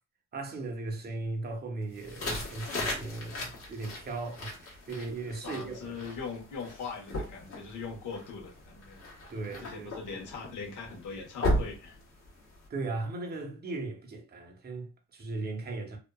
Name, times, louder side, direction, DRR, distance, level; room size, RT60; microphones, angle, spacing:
voice 1, 0.3-6.0 9.3-9.9 12.7-16.0, right 3 dB, 30° right, 0.8 m, -37 dB
sound 1, 1.9-12.7, left 1 dB, 50° left, 1.2 m, -37 dB
voice 2, 5.2-9.0 9.5-12.0, left 5 dB, 80° left, 1.2 m, -41 dB
2.8 x 2.3 x 2.2 m
cardioid pair, 90°, 30 cm